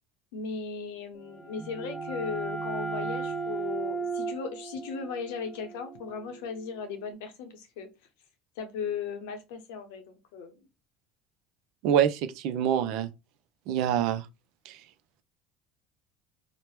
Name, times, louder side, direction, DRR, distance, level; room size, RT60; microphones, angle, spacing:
voice 1, 0.3-7.9 8.6-10.7, left 5 dB, 85° left, 0.7 m, -37 dB
sound 1, 1.2-6.8, right 4 dB, 10° right, 0.7 m, -36 dB
voice 2, 11.8-13.1 13.7-14.3 14.7-14.8, right 9 dB, 70° right, 0.4 m, -25 dB
2.9 x 2.1 x 3.1 m
supercardioid pair, 90°, 0 cm